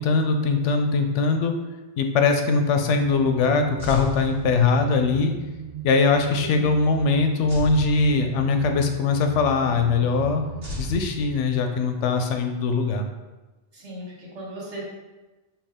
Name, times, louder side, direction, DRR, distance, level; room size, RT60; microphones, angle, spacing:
voice 1, 0.0-1.5 2.0-5.3 5.8-10.4 10.8-13.1, left 4 dB, 90° left, 5 dB, 0.9 m, -21 dB
sound 1, 3.0-11.0, right 8 dB, 55° right, 0.7 m, -38 dB
sound 2, 3.8-5.1 7.5-8.8 10.6-11.9, left 1 dB, 40° right, 1.1 m, -37 dB
voice 2, 6.4-6.8 13.7-14.8, equal, 80° right, -4 dB, 1.5 m, -37 dB
5.7 x 2.4 x 3.5 m, 1.1 s
omnidirectional pair, 1.2 m